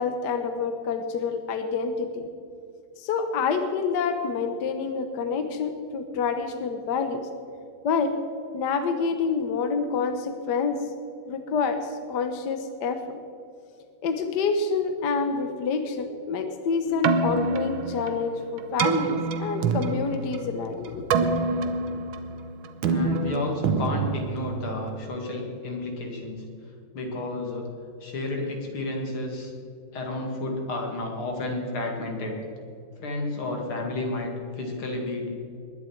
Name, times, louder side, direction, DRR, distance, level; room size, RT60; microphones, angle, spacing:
voice 1, 0.0-2.3 3.0-7.3 7.8-8.2 8.5-10.8 11.3-13.2 14.0-21.3, left 5 dB, 60° left, 7 dB, 1.4 m, -27 dB
Keyboard (musical), 16.9-25.0, right 4 dB, 75° right, 1.7 m, -27 dB
voice 2, 22.9-26.4 26.9-27.7 28.0-29.5 29.9-32.4 33.0-35.3, left 2 dB, 80° left, 1 dB, 3.1 m, -31 dB
20.5 x 10.5 x 4.6 m, 2.5 s
omnidirectional pair, 2.3 m